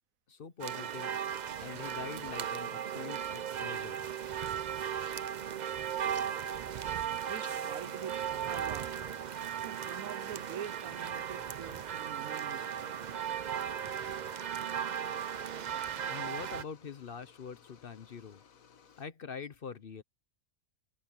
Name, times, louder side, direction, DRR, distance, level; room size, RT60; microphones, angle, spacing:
voice 1, 0.3-1.1 1.6-4.1 16.1-18.4 19.0-20.0, left 6 dB, 45° left, 0.9 m, -44 dB
sound 1, 0.6-16.6, right 9 dB, 55° right, 0.5 m, -36 dB
sound 2, 3.4-9.8, right 1 dB, 10° right, 5.9 m, -62 dB
sound 3, 6.4-19.0, left 7 dB, 85° left, 1.7 m, -60 dB
voice 2, 7.3-8.9 9.6-13.0, right 9 dB, 80° right, 1.2 m, -45 dB
omnidirectional pair, 1.4 m